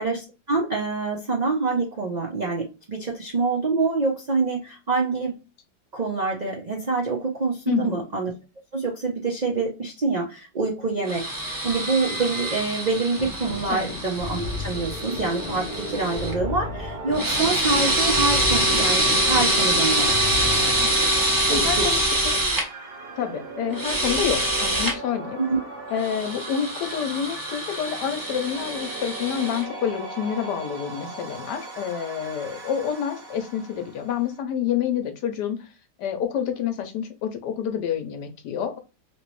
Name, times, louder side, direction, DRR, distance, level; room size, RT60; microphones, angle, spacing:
voice 1, 0.0-5.4 5.9-8.3 8.7-20.2 21.5-22.0 25.4-25.6, right 3 dB, 85° right, -1 dB, 0.3 m, -26 dB
voice 2, 7.7-8.0 13.7-13.9 21.5-22.4 23.2-25.4 25.9-35.7 36.0-38.8, left 8 dB, 70° left, 7 dB, 1.3 m, -28 dB
sound 1, 11.1-16.3 17.1-22.6 23.7-24.9 26.0-29.6, right 1 dB, 20° right, 0.5 m, -25 dB
sound 2, 13.2-21.0, left 4 dB, 50° left, 0.6 m, -35 dB
sound 3, 14.6-34.4, right 2 dB, 40° right, 1.2 m, -38 dB
3.1 x 3.0 x 3.0 m, 0.29 s
omnidirectional pair, 1.9 m